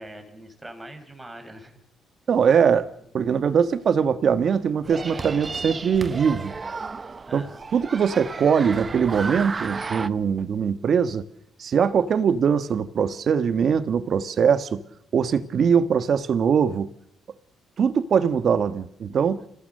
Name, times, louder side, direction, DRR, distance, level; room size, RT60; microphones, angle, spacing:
voice 1, 0.0-1.8 7.3-7.7, right 1 dB, 15° right, 6 dB, 4.9 m, -42 dB
voice 2, 2.3-2.9 3.1-6.5 7.3-7.4 7.7-11.2 11.6-14.8 15.1-16.9 17.8-19.4, right 7 dB, 55° right, 13 dB, 1.3 m, -21 dB
sound 1, 4.8-10.1, right 4 dB, 30° right, 0.8 m, -33 dB
26.5 x 17.0 x 6.7 m, 0.79 s
cardioid pair, 90°, 0 cm